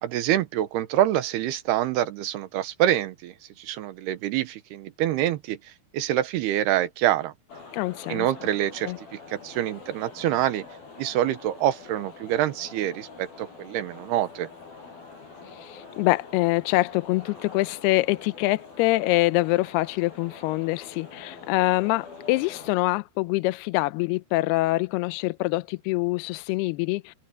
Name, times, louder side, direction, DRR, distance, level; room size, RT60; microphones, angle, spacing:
voice 1, 0.0-3.3 3.6-5.6 5.9-7.3 8.1-10.7 11.0-14.5, right 12 dB, 75° right, 2.9 m, -26 dB
sound 1, 7.5-22.7, left 4 dB, 60° left, 6.6 m, -45 dB
voice 2, 7.7-8.3 8.8-9.0 15.5-27.2, left 20 dB, 80° left, 2.5 m, -25 dB
omnidirectional pair, 4.9 m